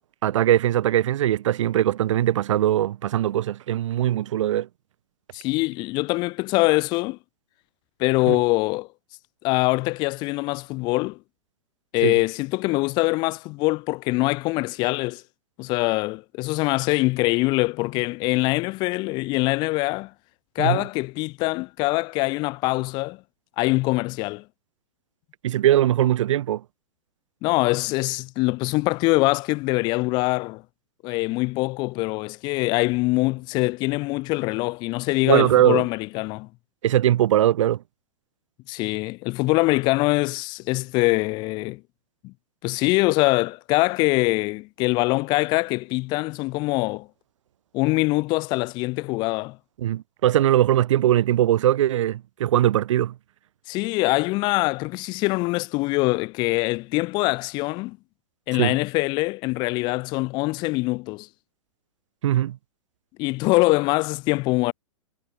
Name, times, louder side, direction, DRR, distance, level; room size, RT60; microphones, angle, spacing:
voice 1, 0.2-4.7 8.3-8.4 12.0-12.1 20.6-20.8 25.4-26.6 35.2-35.8 36.8-37.8 49.8-53.1 58.6-58.8 62.2-62.6, right 12 dB, 60° right, 0.7 m, -20 dB
voice 2, 5.3-7.2 8.0-8.9 9.4-11.2 11.9-15.2 15.6-20.1 20.6-23.2 23.6-24.4 27.4-30.6 31.0-36.5 38.7-41.8 42.2-42.3 42.6-47.1 47.7-49.6 53.7-58.0 58.5-61.3 63.2-64.7, left 23 dB, 25° left, 0.3 m, -23 dB
figure-of-eight pair, 110°, 18 cm